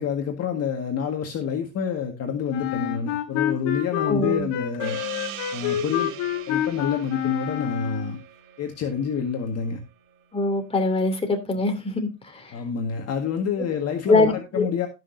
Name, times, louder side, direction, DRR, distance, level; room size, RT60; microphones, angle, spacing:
voice 1, 0.0-5.0 5.5-6.1 6.5-8.2 8.6-9.8 12.5-14.9, left 7 dB, 40° left, 1.8 m, -28 dB
Wind instrument woodwind instrument, 2.5-8.2, left 11 dB, 70° left, 1.7 m, -28 dB
voice 2, 4.1-4.5 10.3-12.6 14.1-14.7, left 2 dB, 15° left, 2.9 m, -23 dB
Gong, 4.8-9.9, right 10 dB, 65° right, 1.9 m, -40 dB
17.0 x 6.3 x 2.7 m
supercardioid pair, 100°, 37 cm